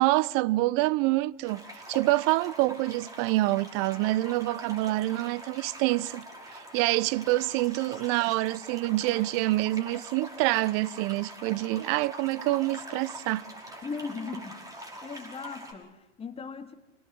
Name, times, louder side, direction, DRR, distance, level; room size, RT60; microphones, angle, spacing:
voice 1, 0.0-1.6 1.9-6.2 6.5-13.5, right 19 dB, 40° right, 0.7 m, -26 dB
sound 1, 1.4-15.7, equal, 10° right, 5.4 m, -44 dB
voice 2, 13.8-14.7 15.0-16.7, left 5 dB, 15° left, 2.2 m, -38 dB
27.0 x 18.0 x 7.7 m
hypercardioid pair, 115°, 36 cm